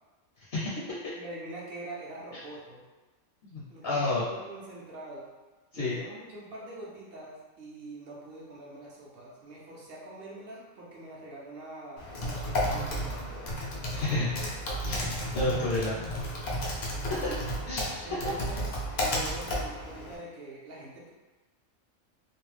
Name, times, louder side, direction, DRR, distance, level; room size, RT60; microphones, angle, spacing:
voice 1, 0.4-0.8 3.4-4.2 5.7-5.9 13.9-14.3 14.9-16.2 16.6-16.8 17.2-17.4 17.7-18.1, left 2 dB, 60° left, -7 dB, 0.7 m, -31 dB
voice 2, 1.1-2.8 3.7-5.3 5.7-13.6 14.2-15.1 17.1-17.4 18.0-18.7 19.0-21.1, right 2 dB, 60° right, -5 dB, 0.7 m, -44 dB
Typing, 12.0-20.2, equal, 80° left, 0.3 m, -33 dB
2.4 x 2.0 x 3.1 m, 1.2 s
omnidirectional pair, 1.4 m